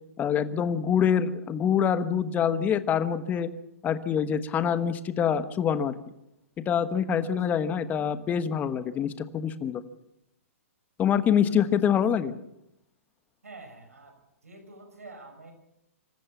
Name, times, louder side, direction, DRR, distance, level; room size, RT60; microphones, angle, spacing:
voice 1, 0.2-3.5 3.8-5.9 6.7-9.8 11.0-12.4, left 8 dB, 20° left, 12 dB, 1.2 m, -25 dB
voice 2, 13.4-14.2 14.4-15.5, right 3 dB, 90° right, 6 dB, 6.1 m, -47 dB
26.0 x 15.0 x 7.1 m, 0.83 s
hypercardioid pair, 125°, 8 cm